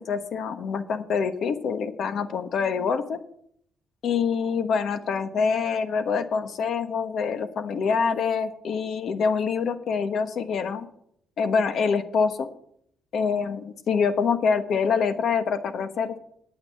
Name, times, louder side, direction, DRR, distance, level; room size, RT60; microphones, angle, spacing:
voice 1, 0.0-3.2 4.0-10.9 11.4-12.5 13.1-16.2, left 5 dB, 65° left, 9 dB, 1.2 m, -25 dB
9.6 x 8.7 x 7.1 m, 0.69 s
cardioid pair, 90°, 0 cm